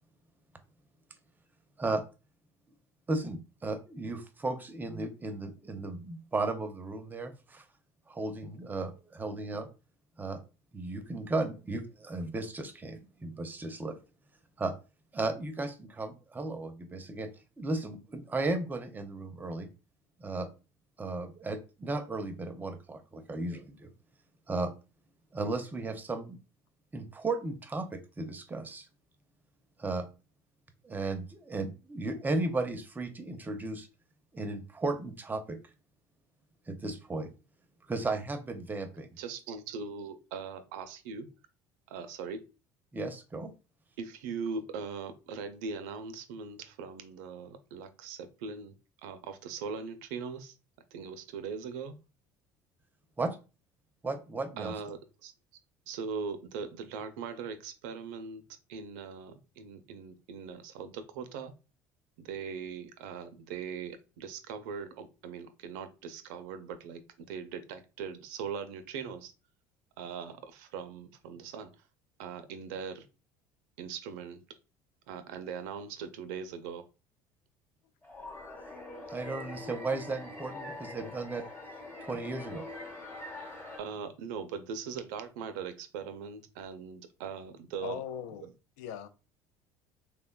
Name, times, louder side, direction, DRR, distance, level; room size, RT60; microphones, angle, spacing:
voice 1, 3.1-7.6 8.1-9.7 10.2-10.4 10.7-14.0 14.6-14.7 15.1-17.3 17.6-19.7 20.2-20.5 21.0-23.9 24.5-24.7 25.3-26.4 26.9-28.9 29.8-30.1 30.8-33.9 34.3-35.6 36.7-37.3 37.9-39.2 42.9-43.5 53.2-53.4 54.0-54.7 79.1-81.4 82.0-82.7, right 2 dB, 20° right, 0.5 m, -35 dB
voice 2, 39.2-41.3 41.9-42.4 44.0-48.7 49.0-50.5 50.9-52.0 54.6-55.3 55.9-58.4 58.7-61.5 62.2-69.3 70.0-71.7 72.2-73.0 73.8-74.4 75.1-76.8 83.8-88.0 88.4-88.5, right 6 dB, 80° right, 0.4 m, -40 dB
sound 1, 78.0-83.8, left 2 dB, 25° left, 1.1 m, -44 dB
voice 3, 87.8-88.5 88.8-89.1, left 9 dB, 80° left, 0.3 m, -39 dB
3.3 x 2.2 x 2.2 m
supercardioid pair, 85°, 10 cm